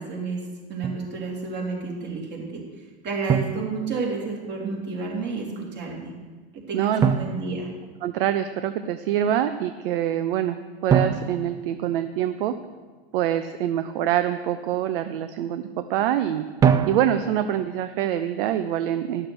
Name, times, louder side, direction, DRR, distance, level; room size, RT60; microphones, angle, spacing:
voice 1, 0.0-6.1 6.7-7.7, right 4 dB, 35° right, -2 dB, 3.3 m, -31 dB
Drum, 0.8-1.1 3.3-4.4 7.0-8.4 10.9-12.6 16.6-17.6, right 7 dB, 10° right, 0.3 m, -25 dB
voice 2, 8.0-10.6 10.8-12.5 13.1-16.4 16.9-19.3, right 11 dB, 60° right, 10 dB, 0.6 m, -25 dB
11.5 x 6.5 x 6.1 m, 1.4 s
hypercardioid pair, 120°, 32 cm